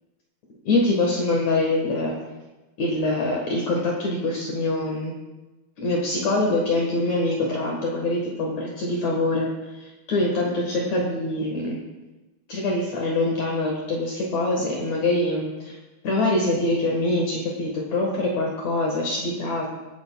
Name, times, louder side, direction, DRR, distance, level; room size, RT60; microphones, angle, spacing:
voice 1, 0.6-2.1 2.8-5.1 5.8-9.5 9.8-11.8 12.5-15.7 16.0-19.7, left 2 dB, 60° left, -1 dB, 2.6 m, -24 dB
24.0 x 10.5 x 2.3 m, 1.1 s
omnidirectional pair, 3.9 m